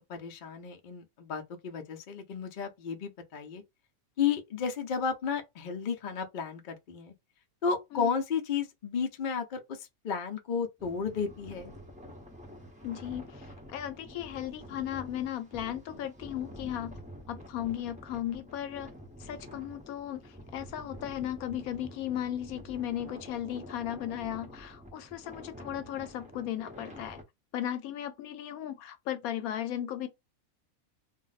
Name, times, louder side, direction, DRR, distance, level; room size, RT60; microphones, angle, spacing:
voice 1, 0.1-3.6 4.2-7.1 7.6-11.7, left 6 dB, 60° left, 0.5 m, -33 dB
sound 1, 10.8-27.2, equal, 10° right, 0.6 m, -48 dB
voice 2, 12.8-17.0 17.3-18.9 19.2-27.2 27.5-30.1, left 11 dB, 80° left, 1.0 m, -36 dB
2.5 x 2.0 x 3.9 m
omnidirectional pair, 1.5 m